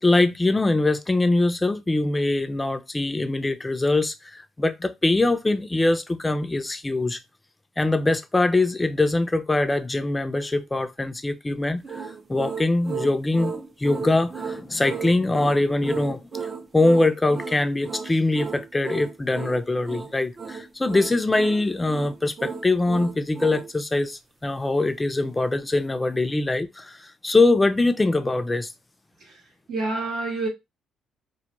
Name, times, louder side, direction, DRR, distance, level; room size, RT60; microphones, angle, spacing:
voice 1, 0.0-7.2 7.8-16.3 16.7-28.7, left 2 dB, 20° left, 0.4 m, -23 dB
sound 1, 11.8-23.7, right 6 dB, 40° right, 0.5 m, -34 dB
voice 2, 29.2-30.5, right 2 dB, 75° right, 0.9 m, -29 dB
2.2 x 2.2 x 2.9 m
supercardioid pair, 70°, 0 cm